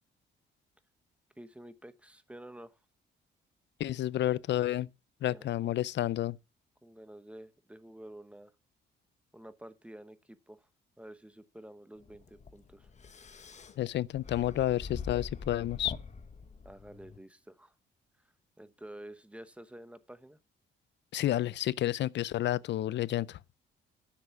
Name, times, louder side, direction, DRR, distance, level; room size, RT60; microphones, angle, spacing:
voice 1, 1.4-2.8 5.2-5.8 6.8-8.5 9.3-10.7 11.0-12.9 16.6-17.7 18.6-20.4, right 1 dB, 5° right, 1.0 m, -50 dB
voice 2, 3.8-4.9 5.2-6.4 13.8-15.9 21.1-23.4, left 13 dB, 65° left, 0.5 m, -30 dB
sound 1, 12.0-17.2, left 5 dB, 35° left, 1.2 m, -44 dB
10.0 x 7.0 x 7.1 m
cardioid pair, 90°, 20 cm